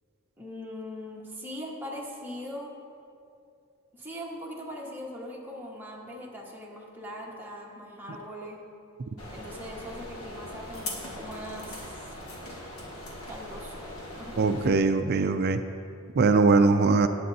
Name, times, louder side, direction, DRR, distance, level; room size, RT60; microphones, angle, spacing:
voice 1, 0.4-2.7 3.9-8.6 9.3-12.2 13.3-14.6, equal, 10° right, -3 dB, 1.4 m, -41 dB
sound 1, 9.2-14.7, left 1 dB, 75° left, 1.7 m, -40 dB
voice 2, 14.4-15.6 16.2-17.1, right 4 dB, 50° right, 8 dB, 0.4 m, -21 dB
17.0 x 8.5 x 2.8 m, 2.5 s
head